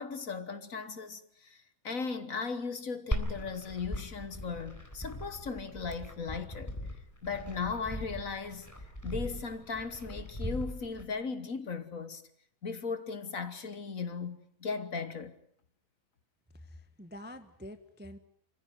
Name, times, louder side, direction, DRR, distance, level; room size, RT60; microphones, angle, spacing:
voice 1, 0.0-6.7 7.2-8.7 9.0-12.2 12.6-15.3, left 5 dB, 45° left, 1.5 m, -37 dB
Glass, 3.1-11.1, equal, 10° left, 3.9 m, -39 dB
voice 2, 16.5-18.2, left 1 dB, 5° right, 0.8 m, -47 dB
28.0 x 15.5 x 9.5 m
omnidirectional pair, 2.2 m